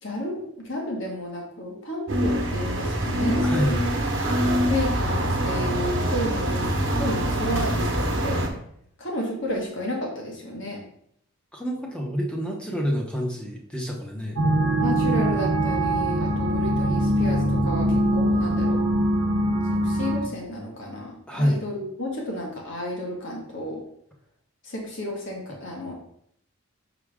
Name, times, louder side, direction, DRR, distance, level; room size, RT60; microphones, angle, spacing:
voice 1, 0.0-4.0 4.7-8.4 9.0-10.8 14.8-18.8 19.8-23.8 24.6-25.9, left 1 dB, 55° left, -1 dB, 1.7 m, -32 dB
sound 1, 2.1-8.5, equal, 55° right, 1.2 m, -24 dB
voice 2, 3.4-3.8 11.5-14.4 21.3-21.6, equal, 5° left, 0 dB, 0.9 m, -27 dB
sound 2, 14.4-20.2, right 1 dB, 75° right, 0.9 m, -22 dB
5.9 x 4.9 x 3.6 m, 0.69 s
head